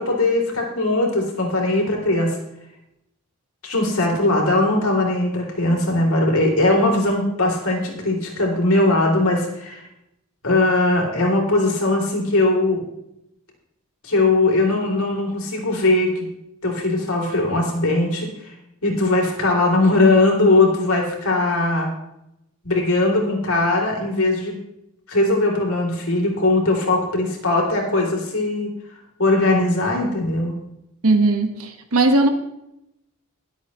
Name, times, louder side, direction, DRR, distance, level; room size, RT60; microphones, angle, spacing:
voice 1, 0.0-2.3 3.6-9.8 10.4-12.8 14.0-16.3 16.6-18.5 18.8-21.9 22.6-24.5 25.1-28.7 29.2-30.6, left 2 dB, 80° left, 0 dB, 3.5 m, -20 dB
voice 2, 31.0-32.3, right 2 dB, 80° right, 6 dB, 1.5 m, -18 dB
21.5 x 8.2 x 3.2 m, 0.84 s
head